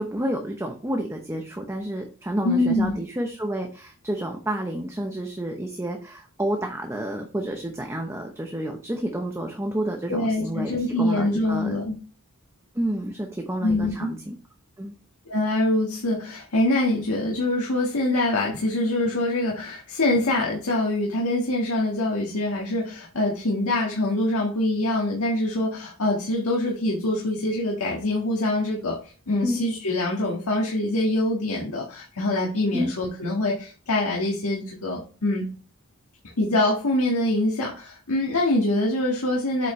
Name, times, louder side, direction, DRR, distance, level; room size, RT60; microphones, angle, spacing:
voice 1, 0.0-11.8 12.7-14.3 14.8-14.9 29.4-29.6 32.7-32.9, right 1 dB, 10° right, 3 dB, 0.8 m, -30 dB
voice 2, 2.4-2.9 10.1-12.0 13.6-14.1 15.3-29.0 29.3-35.5 36.4-39.7, left 1 dB, 85° left, -3 dB, 1.7 m, -24 dB
8.2 x 5.4 x 3.2 m, 0.37 s
head